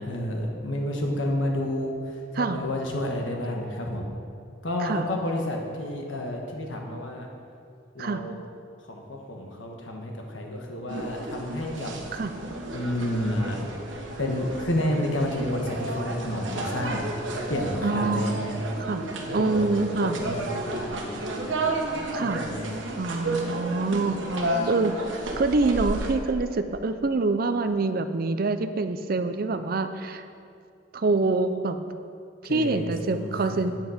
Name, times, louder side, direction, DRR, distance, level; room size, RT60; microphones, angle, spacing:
voice 1, 0.0-2.0 2.4-4.1 4.6-7.3 7.9-8.4 8.9-11.9 12.7-13.6 14.2-17.1 17.5-18.6 19.3-22.8 32.4-33.5, left 1 dB, 90° left, 1 dB, 1.4 m, -30 dB
sound 1, 10.9-26.1, right 2 dB, 80° right, 1.3 m, -32 dB
voice 2, 17.8-19.1 19.3-20.2 22.1-22.4 23.0-24.2 24.6-25.0 25.4-30.2 30.9-31.8 32.4-33.7, right 3 dB, 50° right, 10 dB, 0.5 m, -26 dB
9.2 x 7.9 x 5.0 m, 2.4 s
head